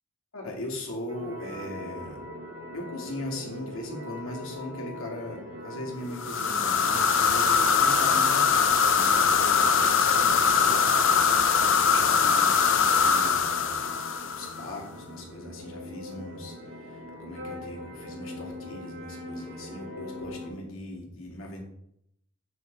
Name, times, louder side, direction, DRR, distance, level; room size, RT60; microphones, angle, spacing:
voice 1, 0.3-2.2 2.7-13.9 14.3-21.6, left 1 dB, 80° left, 0 dB, 2.1 m, -39 dB
sound 1, 1.1-20.5, left 1 dB, 60° right, 3.0 m, -42 dB
sound 2, 6.2-14.7, left 6 dB, 65° left, 0.7 m, -22 dB
sound 3, 6.3-6.4 6.8-7.8 8.5-9.3 9.7-11.1 11.4-12.3 12.6-12.7, left 2 dB, 15° left, 2.2 m, -45 dB
7.1 x 6.2 x 3.9 m, 0.75 s
head